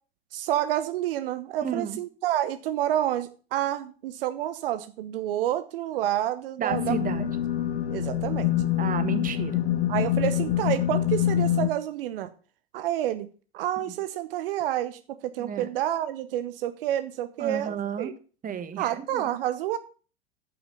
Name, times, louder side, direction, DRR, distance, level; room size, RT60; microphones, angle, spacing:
voice 1, 0.3-7.0 7.9-8.5 9.9-12.3 12.7-13.3 13.5-18.1 18.8-19.8, right 12 dB, 65° right, 10 dB, 1.0 m, -29 dB
voice 2, 1.6-2.0 6.6-7.3 8.8-9.6 15.4-15.7 17.4-18.1 18.4-19.2, right 7 dB, 25° right, 10 dB, 1.5 m, -32 dB
sound 1, 6.7-11.7, left 11 dB, 70° left, 1.0 m, -25 dB
10.5 x 5.9 x 7.1 m, 0.39 s
hypercardioid pair, 85°, 30 cm